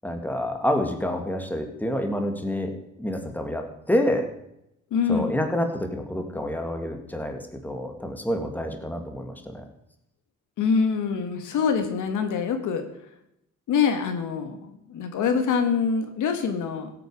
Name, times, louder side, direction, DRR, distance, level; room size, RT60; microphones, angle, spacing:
voice 1, 0.0-4.3 5.1-9.6, left 1 dB, 5° left, 4 dB, 2.1 m, -28 dB
voice 2, 4.9-5.4 10.6-12.9 13.7-16.9, left 6 dB, 80° left, 7 dB, 1.7 m, -25 dB
16.0 x 8.7 x 4.9 m, 0.82 s
cardioid pair, 90°, 30 cm